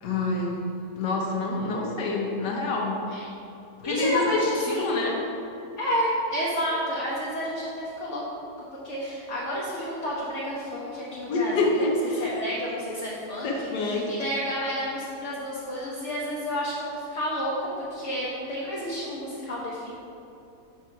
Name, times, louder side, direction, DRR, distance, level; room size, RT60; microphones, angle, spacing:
voice 1, 0.0-0.6 1.0-3.0 3.8-5.1 11.3-12.4 13.4-14.1, left 2 dB, 85° left, -1 dB, 1.5 m, -27 dB
voice 2, 3.8-5.0 5.8-8.2 8.8-11.9 12.2-19.9, equal, 55° left, -6 dB, 1.0 m, -30 dB
4.7 x 4.0 x 5.7 m, 2.8 s
omnidirectional pair, 1.8 m